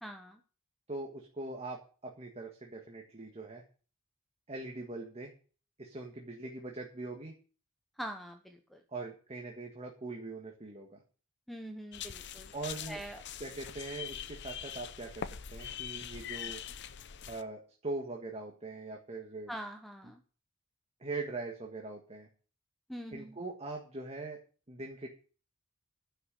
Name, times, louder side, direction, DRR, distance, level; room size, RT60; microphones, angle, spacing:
voice 1, 0.0-0.4 8.0-8.8 11.5-12.5 12.9-13.2 19.5-20.2 22.9-23.4, right 1 dB, ahead, 5 dB, 0.8 m, -43 dB
voice 2, 0.9-3.6 4.5-5.3 5.8-7.3 8.9-11.0 12.5-13.0 13.4-15.3 15.5-16.6 17.3-19.5 21.0-22.3 23.1-24.4 24.7-25.1, right 2 dB, 30° right, 1 dB, 1.6 m, -41 dB
sound 1, 11.9-17.4, left 8 dB, 55° left, 0.7 m, -43 dB
11.0 x 6.2 x 8.3 m, 0.39 s
head